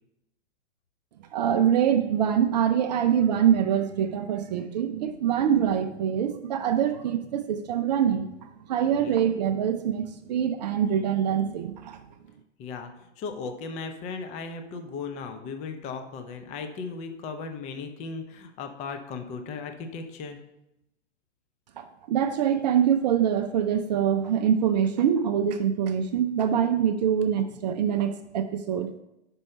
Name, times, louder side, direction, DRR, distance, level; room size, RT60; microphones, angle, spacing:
voice 1, 1.3-12.0 21.8-28.9, right 9 dB, 40° right, 8 dB, 0.5 m, -24 dB
voice 2, 12.6-20.4, left 4 dB, 20° left, 6 dB, 0.5 m, -37 dB
5.4 x 5.2 x 5.4 m, 0.88 s
figure-of-eight pair, 115°, 35 cm